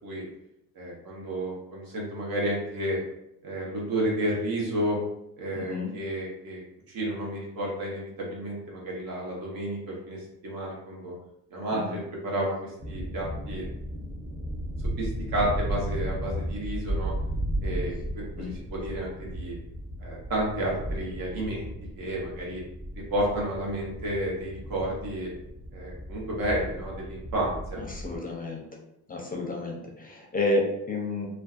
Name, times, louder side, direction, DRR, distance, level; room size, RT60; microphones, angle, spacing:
voice 1, 0.7-3.0 3.4-5.0 5.4-6.6 6.9-11.1 11.5-13.7 15.0-17.1 17.6-19.5 20.0-21.7 22.0-22.6 23.1-25.3 25.7-27.8, right 1 dB, 65° right, -3 dB, 1.0 m, -31 dB
voice 2, 5.5-5.9 11.7-12.0 18.4-18.5 27.8-28.6 29.1-31.3, left 2 dB, 25° left, 0 dB, 0.5 m, -30 dB
sound 1, 12.8-28.2, equal, 20° right, 0.7 m, -35 dB
2.5 x 2.2 x 2.4 m, 0.80 s
cardioid pair, 80°, 37 cm